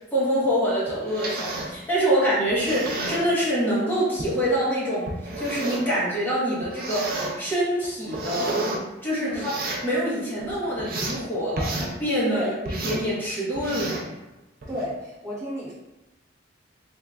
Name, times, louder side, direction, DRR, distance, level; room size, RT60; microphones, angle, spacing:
voice 1, 0.1-5.1 5.4-7.1 7.4-8.5 9.0-9.6 9.8-12.5 12.8-14.0, equal, 10° left, -10 dB, 1.1 m, -25 dB
sound 1, 0.9-1.7 2.5-3.3 4.2-4.3 5.1-5.9 6.6-7.3 7.8-8.8 9.3-9.9 10.4-11.2 11.6-11.9 12.7-13.1 13.6-14.1 14.6-14.9, right 2 dB, 50° right, 0.5 m, -31 dB
voice 2, 9.2-9.6 12.3-12.5 14.7-15.7, equal, 15° right, -9 dB, 1.1 m, -32 dB
3.5 x 3.1 x 2.3 m, 1.0 s
head